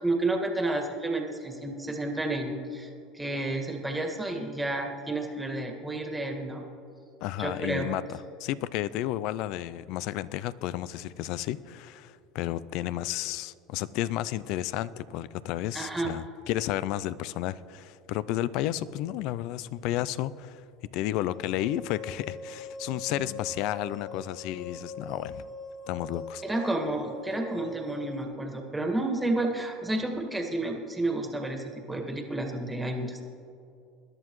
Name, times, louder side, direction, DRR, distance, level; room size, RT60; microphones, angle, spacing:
voice 1, 0.0-6.6 7.4-7.9 15.7-16.1 26.4-33.2, right 2 dB, 10° right, 3 dB, 1.8 m, -31 dB
voice 2, 7.2-20.6 20.9-25.4 25.9-26.4, left 13 dB, 65° left, 17 dB, 0.4 m, -32 dB
sound 1, 21.3-28.3, left 2 dB, 35° left, 3.5 m, -42 dB
20.5 x 11.0 x 3.1 m, 2.6 s
supercardioid pair, 105°, 0 cm